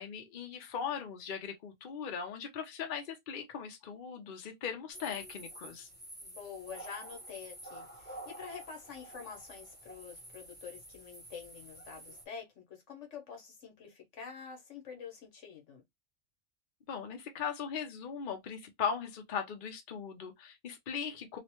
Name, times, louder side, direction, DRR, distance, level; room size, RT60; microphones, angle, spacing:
voice 1, 0.0-5.9 16.9-21.4, left 7 dB, 50° left, 0.7 m, -39 dB
sound 1, 4.9-12.2, right 1 dB, 10° left, 0.9 m, -49 dB
voice 2, 6.2-15.8, left 6 dB, 75° left, 1.3 m, -47 dB
3.0 x 2.1 x 2.8 m
omnidirectional pair, 1.2 m